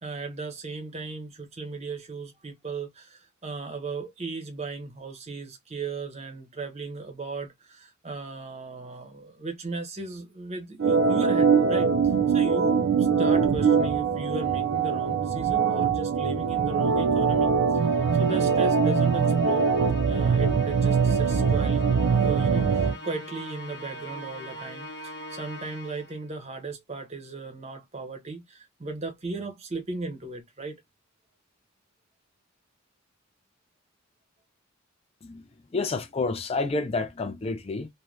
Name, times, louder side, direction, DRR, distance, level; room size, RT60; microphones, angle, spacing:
voice 1, 0.0-11.9 12.3-19.7 20.0-21.8 22.2-30.8, right 3 dB, 30° right, 0.7 m, -36 dB
Organ, 10.8-22.9, right 5 dB, 60° right, 0.3 m, -22 dB
Musical instrument, 17.8-26.2, equal, 55° left, 0.9 m, -42 dB
voice 2, 35.7-37.9, left 3 dB, 30° left, 0.4 m, -29 dB
2.5 x 2.1 x 3.0 m
head